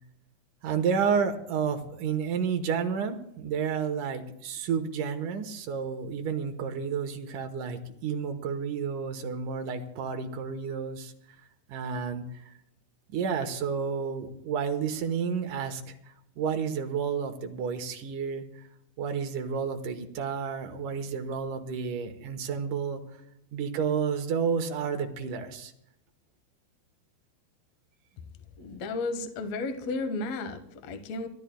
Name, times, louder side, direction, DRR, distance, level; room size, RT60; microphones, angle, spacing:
voice 1, 0.6-11.1 11.7-12.5 13.1-15.9 16.4-18.5 19.0-23.0 23.5-25.7, right 6 dB, 70° right, 6 dB, 2.2 m, -31 dB
voice 2, 28.6-31.3, left 3 dB, 65° left, 7 dB, 1.7 m, -33 dB
30.0 x 13.5 x 2.3 m, 0.77 s
omnidirectional pair, 4.7 m